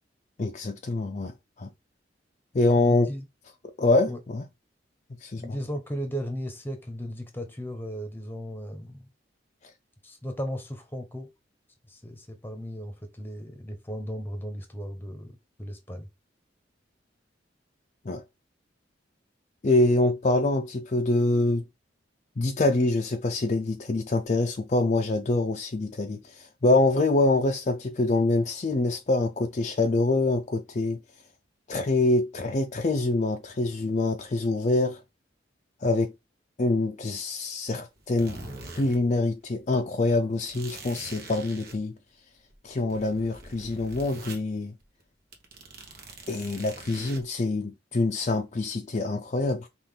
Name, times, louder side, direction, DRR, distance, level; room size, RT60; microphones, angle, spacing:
voice 1, 0.4-1.7 2.5-3.1 3.8-4.5 5.2-5.6 9.6-9.7 18.0-18.2 19.6-21.6 22.4-31.0 31.7-35.0 35.8-36.1 36.6-38.4 38.7-42.0 42.6-44.7 46.3-49.7, left 2 dB, 40° left, 0.5 m, -25 dB
voice 2, 2.7-3.2 4.1-4.2 5.4-9.1 10.0-11.3 11.9-16.1, equal, 10° left, 1.0 m, -36 dB
sound 1, 38.0-39.0 39.3-39.4 40.5-41.8 42.3-44.4 44.8-45.0 45.3-47.2, right 2 dB, 55° right, 1.1 m, -43 dB
5.6 x 2.5 x 3.4 m
head